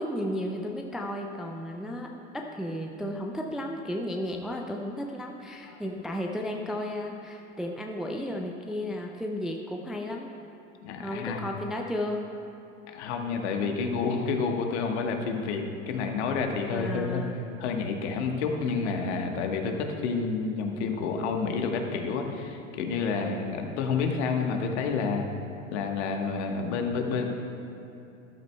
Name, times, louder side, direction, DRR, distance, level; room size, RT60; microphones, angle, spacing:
voice 1, 0.0-10.3 11.0-12.2 16.7-17.4 23.1-23.7, left 1 dB, ahead, 1 dB, 0.4 m, -34 dB
voice 2, 10.8-11.4 12.9-17.2 17.6-25.3 25.7-27.3, left 5 dB, 60° left, 3 dB, 1.3 m, -29 dB
13.5 x 12.0 x 2.3 m, 2.9 s
hypercardioid pair, 90°, 39 cm